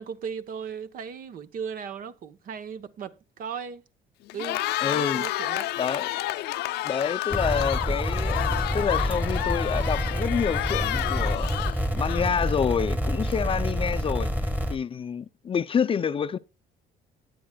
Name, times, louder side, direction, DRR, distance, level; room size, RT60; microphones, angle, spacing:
voice 1, 0.0-3.8 4.3-5.7, right 7 dB, 55° right, 1.0 m, -37 dB
Cheering, 4.3-12.5, left 16 dB, 85° left, 0.6 m, -30 dB
voice 2, 4.8-5.2 5.8-6.1 6.8-11.5 11.9-16.4, left 7 dB, 30° left, 0.5 m, -28 dB
sound 1, 7.3-14.8, equal, 10° right, 1.6 m, -28 dB
18.0 x 8.6 x 2.3 m
cardioid pair, 110°, 17 cm